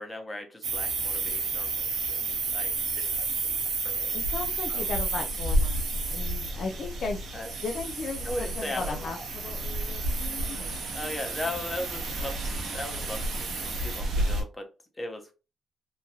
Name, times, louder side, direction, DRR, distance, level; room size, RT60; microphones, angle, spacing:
voice 1, 0.0-3.5 3.8-4.1 4.7-4.9 6.6-6.7 7.3-7.5 8.2-9.2 10.9-14.7 14.9-15.3, left 1 dB, 25° left, 0.8 m, -38 dB
sound 1, 0.6-14.4, right 2 dB, 75° right, 0.8 m, -30 dB
voice 2, 4.1-7.2 7.6-10.9, left 4 dB, 60° left, 0.4 m, -36 dB
2.8 x 2.3 x 2.7 m
supercardioid pair, 55°, 0 cm